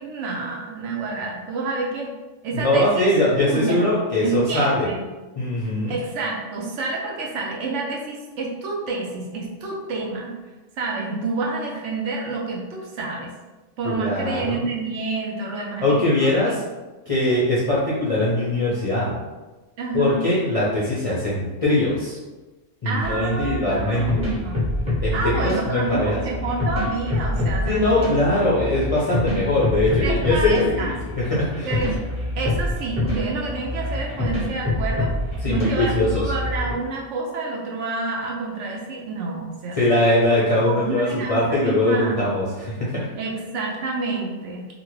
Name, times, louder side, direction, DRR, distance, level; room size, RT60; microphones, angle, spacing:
voice 1, 0.0-2.1 2.4-3.1 3.4-3.9 4.2-5.0 5.9-10.3 10.8-13.3 13.8-16.5 19.8-20.3 22.8-24.6 25.1-28.2 30.0-30.9 31.7-32.0 32.3-35.1 35.5-39.8 40.6-42.3 43.2-44.7, right 3 dB, 70° right, -2 dB, 0.9 m, -28 dB
voice 2, 2.5-4.9 5.4-6.0 13.8-14.6 15.8-16.5 17.1-19.1 19.9-22.2 22.8-24.3 25.0-26.2 27.6-31.7 35.4-36.2 39.7-43.1, left 1 dB, 50° left, -7 dB, 0.4 m, -21 dB
sound 1, 23.0-36.7, left 1 dB, 5° right, 0.9 m, -26 dB
2.6 x 2.4 x 3.0 m, 1.2 s
omnidirectional pair, 1.3 m